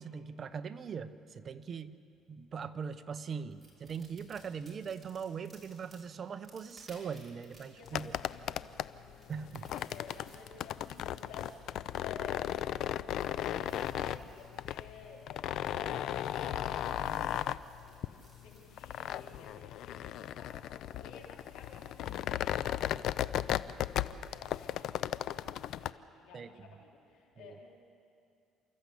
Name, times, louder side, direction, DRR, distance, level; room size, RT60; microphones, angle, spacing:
voice 1, 0.0-2.0 2.3-8.1 9.3-9.7 26.3-26.5 27.4-27.6, right 6 dB, 40° right, 11 dB, 0.8 m, -41 dB
sound 1, 3.5-22.4, right 1 dB, 5° right, 5.6 m, -63 dB
voice 2, 7.6-27.7, left 4 dB, 85° left, -1 dB, 3.9 m, -53 dB
sound 2, 7.8-25.9, left 11 dB, 65° left, 0.5 m, -36 dB
29.5 x 14.0 x 8.5 m, 2.6 s
cardioid pair, 125°, 0 cm